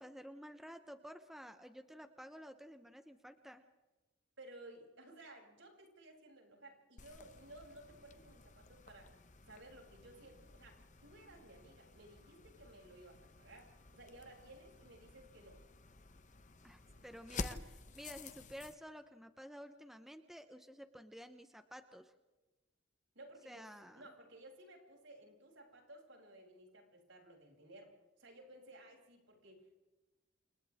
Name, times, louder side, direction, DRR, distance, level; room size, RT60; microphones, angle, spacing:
voice 1, 0.0-3.6 16.6-22.1 23.5-24.0, equal, ahead, 7 dB, 1.0 m, -52 dB
voice 2, 4.4-9.2 9.5-15.6 16.9-17.0 23.1-23.7 23.9-27.9 28.2-29.8, right 1 dB, 70° right, 0 dB, 8.0 m, -57 dB
sound 1, 7.0-18.8, left 3 dB, 40° left, 1.1 m, -51 dB
29.5 x 28.5 x 3.7 m, 1.1 s
head